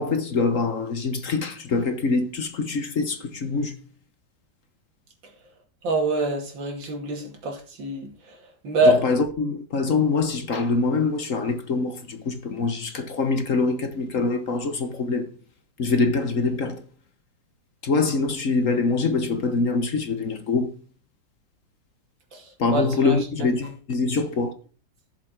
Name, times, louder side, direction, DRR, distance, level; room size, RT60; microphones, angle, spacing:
voice 1, 0.0-3.8 8.8-15.3 15.8-16.8 17.8-20.8 22.6-24.5, left 3 dB, 50° left, 1.4 m, -24 dB
voice 2, 5.8-8.1 8.6-9.0 22.3-22.4 22.7-23.2, right 2 dB, 85° right, 3.2 m, -24 dB
14.0 x 7.4 x 4.5 m
omnidirectional pair, 2.0 m